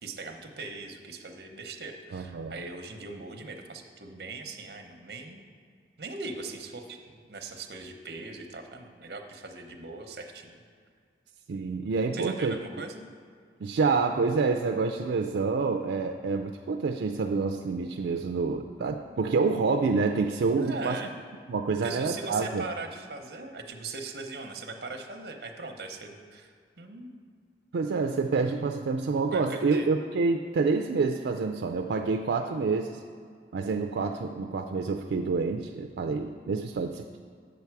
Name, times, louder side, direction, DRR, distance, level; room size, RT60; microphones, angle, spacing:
voice 1, 0.0-5.4 6.0-7.0 7.3-10.6 12.1-13.0 20.6-21.1 21.8-27.1 29.3-29.9, right 3 dB, 65° right, 4 dB, 0.8 m, -40 dB
voice 2, 2.1-2.6 11.5-12.6 13.6-21.0 21.5-22.6 27.7-33.0 33.5-37.1, right 4 dB, 90° right, 4 dB, 0.4 m, -27 dB
8.1 x 6.9 x 4.6 m, 2.1 s
head